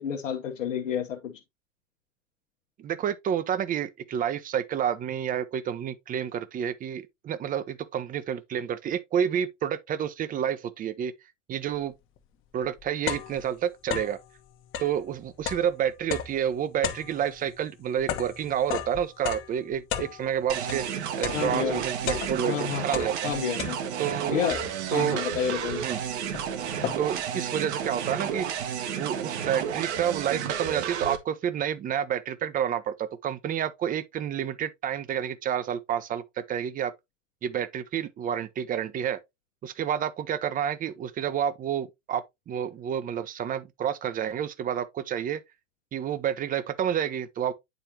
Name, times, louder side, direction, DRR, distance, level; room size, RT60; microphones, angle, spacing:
voice 1, 0.0-1.4 21.3-21.8 22.4-22.9 23.2-23.8 24.3-24.6 24.9-25.8, left 9 dB, 75° left, 1.0 m, -30 dB
voice 2, 2.8-11.1 11.5-11.9 12.5-14.2 14.8-20.8 21.2-23.3 24.0-24.4 24.9-25.2 25.8-26.0 27.0-28.5 29.0-36.9 37.4-39.2 39.6-45.4 45.9-47.5, right 9 dB, 20° right, 0.6 m, -29 dB
sound 1, 12.2-12.3 12.6-14.3 14.6-20.9 21.2-22.6 22.9-24.1 24.5-25.0 25.7-25.8 26.0-27.3, left 9 dB, 35° left, 1.0 m, -35 dB
sound 2, 20.5-31.2, right 8 dB, 60° right, 1.3 m, -32 dB
9.0 x 4.4 x 2.8 m
figure-of-eight pair, 90°, 38 cm